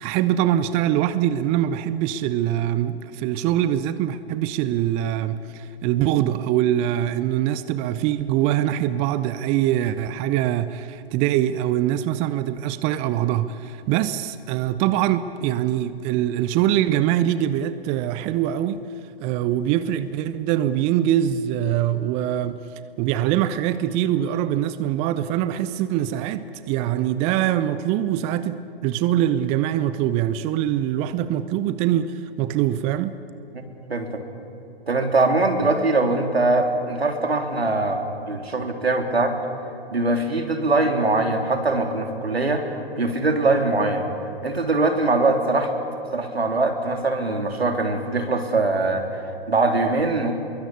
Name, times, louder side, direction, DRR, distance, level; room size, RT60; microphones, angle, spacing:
voice 1, 0.0-18.8 19.2-22.6 23.0-33.1, right 11 dB, 20° right, 0.6 m, -23 dB
voice 2, 33.5-34.2 34.9-38.0 38.3-39.4 39.9-44.1 44.4-45.7 46.1-50.3, right 2 dB, 80° right, 3.5 m, -22 dB
24.5 x 22.5 x 8.5 m
figure-of-eight pair, 120°, 30 cm